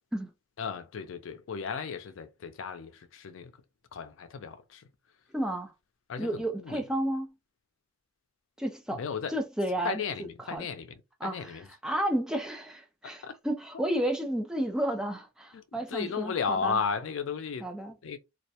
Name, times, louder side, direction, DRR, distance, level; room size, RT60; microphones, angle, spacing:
voice 1, 0.6-3.5 3.9-4.9 6.1-6.8 8.9-9.4 9.8-11.7 13.0-13.3 13.7-13.8 15.5-17.7 18.0-18.2, left 6 dB, 85° left, 0.4 m, -35 dB
voice 2, 5.3-5.7 6.2-7.3 8.6-9.0 9.3-10.0 10.5-10.7 11.2-16.8 17.6-17.9, right 1 dB, 5° right, 0.4 m, -32 dB
2.3 x 2.1 x 2.7 m
head